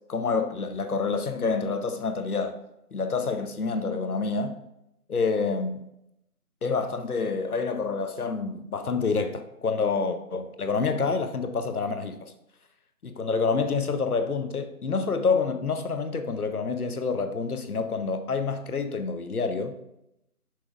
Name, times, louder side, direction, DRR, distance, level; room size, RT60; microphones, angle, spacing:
voice 1, 0.1-2.6 2.9-4.6 5.1-5.9 6.6-12.3 13.0-19.7, left 4 dB, 70° left, 0.8 m, -27 dB
6.1 x 4.9 x 3.4 m
figure-of-eight pair, 165°, 45 cm